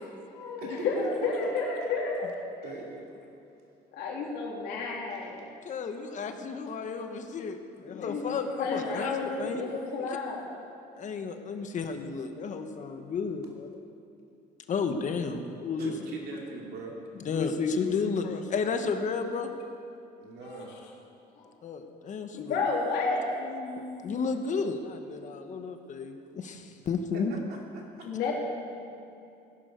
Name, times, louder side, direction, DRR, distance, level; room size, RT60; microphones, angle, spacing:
voice 1, 0.3-2.3 2.6-2.7 4.0-5.4 7.9-10.5 21.4-21.5 22.3-23.3 28.0-28.3, left 4 dB, 80° left, -3 dB, 3.6 m, -31 dB
voice 2, 2.6-3.1 15.8-16.9 20.2-20.7 26.8-26.9 27.3-28.1, right 4 dB, 70° right, -1 dB, 3.0 m, -42 dB
voice 3, 5.6-10.1 11.0-13.8 14.7-15.9 17.2-19.5 21.6-22.7 23.0-23.1 23.4-27.3, left 5 dB, 45° left, 6 dB, 1.3 m, -32 dB
17.5 x 11.0 x 5.3 m, 2.6 s
cardioid pair, 110°, 17 cm